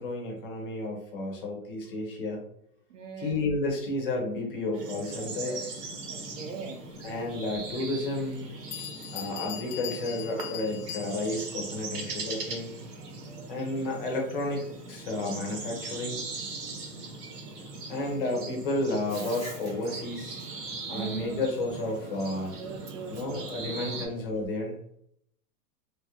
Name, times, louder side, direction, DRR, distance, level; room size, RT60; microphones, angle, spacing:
voice 1, 0.0-2.5 3.2-5.8 7.0-8.5 9.1-12.7 13.5-16.2 17.9-20.4 20.9-22.5 23.1-24.8, left 2 dB, 35° left, 1 dB, 0.6 m, -32 dB
voice 2, 2.9-3.5 6.1-6.9 20.9-21.5 22.6-24.2, right 5 dB, 55° right, 6 dB, 0.5 m, -40 dB
sound 1, 4.7-24.1, right 3 dB, 75° right, 1.1 m, -40 dB
Bell, 8.3-8.4 8.7-11.5, left 11 dB, 80° left, 0.7 m, -40 dB
Bathtub (filling or washing), 19.1-24.5, equal, 15° right, 0.7 m, -48 dB
3.1 x 2.4 x 2.8 m, 0.72 s
supercardioid pair, 170°, 48 cm